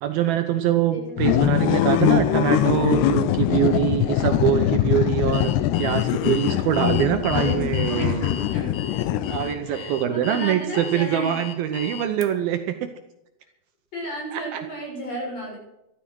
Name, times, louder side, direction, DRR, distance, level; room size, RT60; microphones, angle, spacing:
voice 1, 0.0-5.5 5.8-8.3 9.3-12.9 14.3-14.6, right 10 dB, 75° right, 7 dB, 2.5 m, -24 dB
voice 2, 0.9-1.5 7.3-8.8 9.6-11.4 13.9-15.6, right 1 dB, 40° left, -2 dB, 7.3 m, -33 dB
sound 1, 1.2-9.7, left 13 dB, 85° left, 2.8 m, -22 dB
Alarm, 5.3-12.3, left 8 dB, 60° left, 2.4 m, -37 dB
13.5 x 13.0 x 6.3 m, 0.87 s
omnidirectional pair, 4.8 m